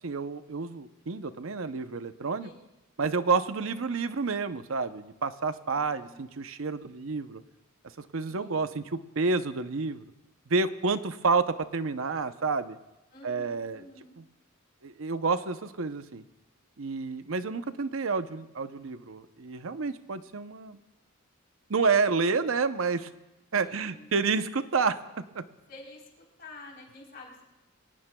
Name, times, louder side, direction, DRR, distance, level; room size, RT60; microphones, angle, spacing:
voice 1, 0.0-2.5 3.0-7.4 8.1-10.0 10.5-12.8 13.2-13.8 14.8-16.2 16.8-20.8 21.7-23.1 23.5-25.0 25.3-25.4, right 4 dB, 70° right, 11 dB, 0.7 m, -29 dB
voice 2, 5.7-6.2 8.2-8.7 13.1-14.2 23.6-24.1 25.7-27.4, left 2 dB, 50° left, -2 dB, 3.8 m, -50 dB
23.5 x 18.5 x 2.3 m, 0.98 s
head